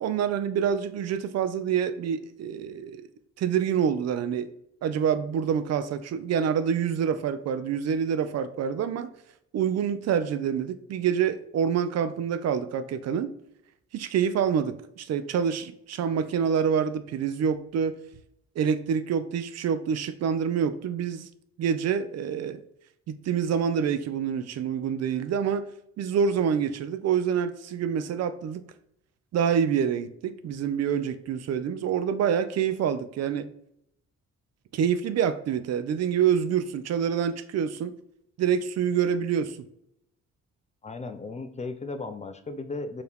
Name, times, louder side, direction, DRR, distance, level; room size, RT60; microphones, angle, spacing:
voice 1, 0.0-3.1 3.4-4.5 4.8-9.1 9.5-13.3 13.9-18.0 18.6-21.3 21.6-22.6 23.1-25.7 26.0-28.6 29.3-33.5 34.7-37.9 38.4-39.6, right 7 dB, 60° right, 11 dB, 0.5 m, -26 dB
voice 2, 40.8-43.0, left 3 dB, 25° left, 8 dB, 0.4 m, -36 dB
4.6 x 2.8 x 3.4 m, 0.74 s
cardioid pair, 90°, 30 cm